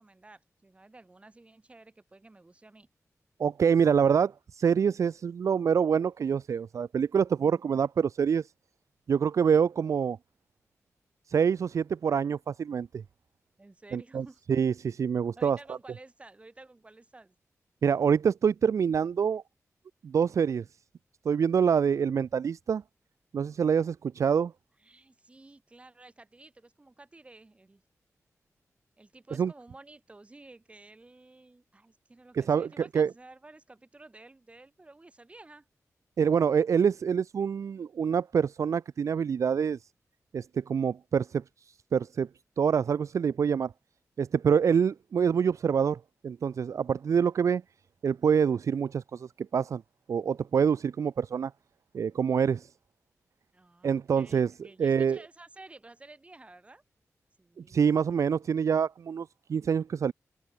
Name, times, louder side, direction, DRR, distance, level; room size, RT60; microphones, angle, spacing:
voice 1, 0.0-2.9 13.6-14.4 15.4-17.4 24.8-27.8 29.0-35.7 53.5-56.8 57.4-57.9, right 2 dB, 20° right, 7.4 m, -53 dB
voice 2, 3.4-8.5 9.1-10.2 11.3-13.0 13.9-15.8 17.8-19.4 20.0-20.6 21.3-22.8 23.3-24.5 29.4-29.5 32.3-33.1 36.2-39.8 40.3-41.4 41.9-42.3 42.6-43.7 44.2-47.6 48.0-49.8 50.1-51.5 51.9-52.7 53.8-54.5 54.8-55.2 57.6-60.1, right 7 dB, 65° right, 0.5 m, -26 dB
open air
wide cardioid pair, 160°, 6 cm